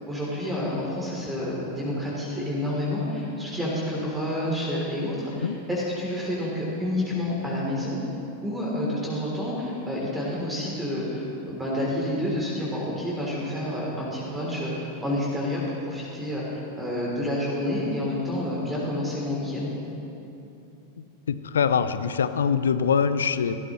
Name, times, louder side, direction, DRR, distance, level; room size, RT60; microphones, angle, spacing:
voice 1, 0.0-8.0 8.4-19.7, left 1 dB, 10° right, -5 dB, 3.3 m, -29 dB
voice 2, 21.3-23.6, left 6 dB, 65° left, 13 dB, 0.5 m, -23 dB
16.5 x 13.5 x 3.2 m, 2.8 s
figure-of-eight pair, 90°, 0 cm